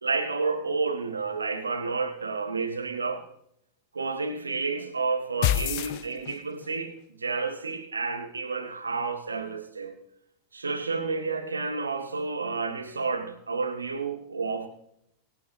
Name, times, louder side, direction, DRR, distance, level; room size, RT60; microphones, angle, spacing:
voice 1, 0.0-3.2 3.9-9.9 10.5-14.7, right 4 dB, 75° right, 1.9 m, -30 dB
sound 1, 5.4-6.7, left 13 dB, 45° left, 0.6 m, -27 dB
23.5 x 8.4 x 3.1 m
figure-of-eight pair, 90°, 0 cm